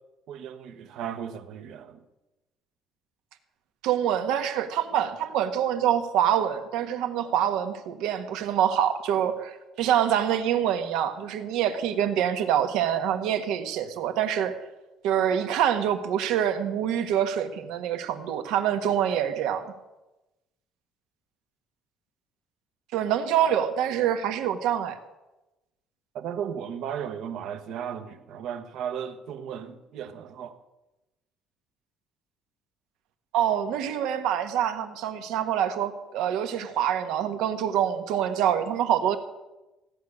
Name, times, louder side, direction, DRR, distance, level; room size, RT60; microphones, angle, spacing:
voice 1, 0.3-2.0 26.1-30.6, right 8 dB, 55° right, 1.1 m, -35 dB
voice 2, 3.8-14.6 15.0-19.7 22.9-25.0 33.3-39.2, right 10 dB, 75° right, 1.4 m, -25 dB
16.0 x 6.5 x 9.9 m
cardioid pair, 170°, 0 cm